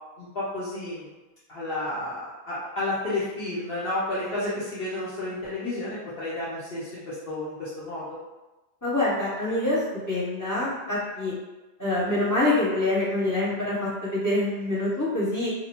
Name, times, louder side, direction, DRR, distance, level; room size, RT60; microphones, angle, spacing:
voice 1, 0.2-1.1 1.5-8.0, left 2 dB, 60° left, -10 dB, 0.9 m, -31 dB
voice 2, 8.8-9.8 10.1-11.3 11.8-15.5, left 2 dB, 20° left, -9 dB, 0.6 m, -25 dB
2.7 x 2.0 x 2.8 m, 1.1 s
omnidirectional pair, 1.2 m